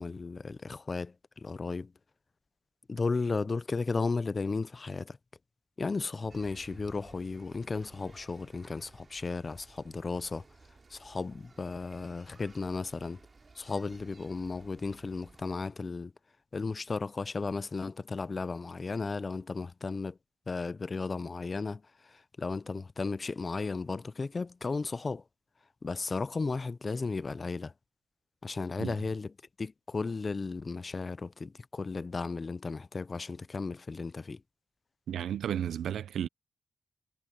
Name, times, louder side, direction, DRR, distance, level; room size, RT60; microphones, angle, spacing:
voice 1, 0.0-1.9 2.9-5.2 5.8-10.4 10.9-13.2 13.6-16.1 16.5-20.2 20.5-25.2 25.8-27.7 28.4-29.3 29.6-34.4, left 4 dB, 35° left, 0.5 m, -35 dB
sound 1, 6.3-15.6, right 3 dB, 35° right, 2.6 m, -56 dB
voice 2, 35.1-36.3, right 9 dB, 90° right, 0.6 m, -33 dB
wide cardioid pair, 115°, 0 cm